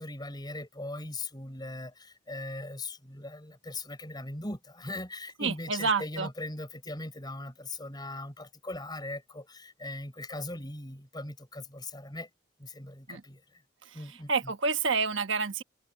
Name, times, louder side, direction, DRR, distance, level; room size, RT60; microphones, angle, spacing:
voice 1, 0.0-12.3 12.6-13.4 13.9-14.3, left 2 dB, 20° left, 5.7 m, -40 dB
voice 2, 5.4-6.3 13.1-13.2 13.8-15.6, right 4 dB, 60° right, 1.2 m, -29 dB
head